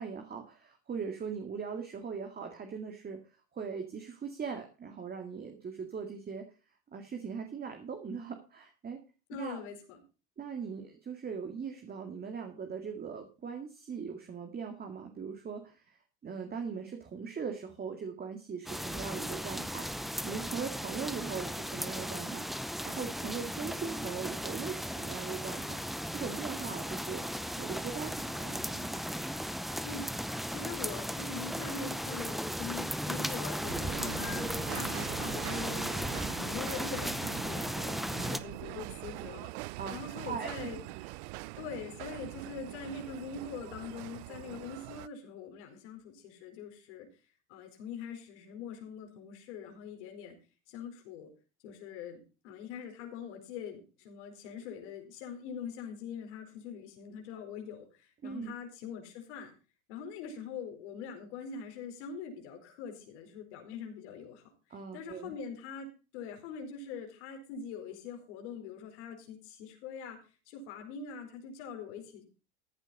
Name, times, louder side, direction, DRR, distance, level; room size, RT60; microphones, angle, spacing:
voice 1, 0.0-3.2 3.5-6.5 6.9-9.0 9.3-9.6 10.4-16.0 16.2-25.8 26.1-27.2 27.6-29.0 39.8-40.0 40.3-40.5 41.0-41.1 58.2-58.5 64.7-65.3, right 6 dB, 25° right, 5 dB, 2.2 m, -40 dB
voice 2, 9.3-10.0 29.8-35.9 36.4-38.0 38.3-41.1 41.6-47.1 47.5-50.3 50.7-51.3 51.6-59.5 59.9-64.5 64.9-65.9 66.1-70.2 70.5-72.2, left 6 dB, 75° left, 4 dB, 4.5 m, -43 dB
sound 1, 18.7-38.4, equal, ahead, 0.8 m, -36 dB
sound 2, 33.7-45.1, right 23 dB, 75° right, 0.5 m, -42 dB
14.5 x 9.0 x 4.1 m, 0.33 s
supercardioid pair, 105°, 34 cm